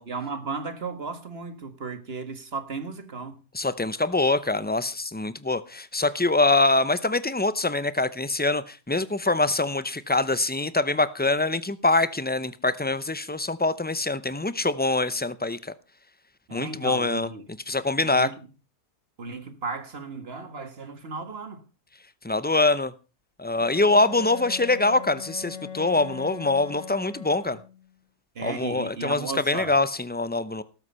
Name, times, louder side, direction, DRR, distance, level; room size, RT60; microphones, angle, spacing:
voice 1, 0.0-3.4 16.5-17.4 18.0-18.4 19.2-21.6 23.6-23.7 28.4-29.7, right 4 dB, 45° right, 1.8 m, -35 dB
voice 2, 3.5-15.7 16.5-17.3 17.7-18.3 22.2-22.9 23.4-27.6 28.4-30.6, left 2 dB, 10° left, 0.4 m, -24 dB
Bowed string instrument, 23.5-28.0, left 6 dB, 60° left, 1.6 m, -40 dB
18.5 x 8.1 x 5.6 m
omnidirectional pair, 1.5 m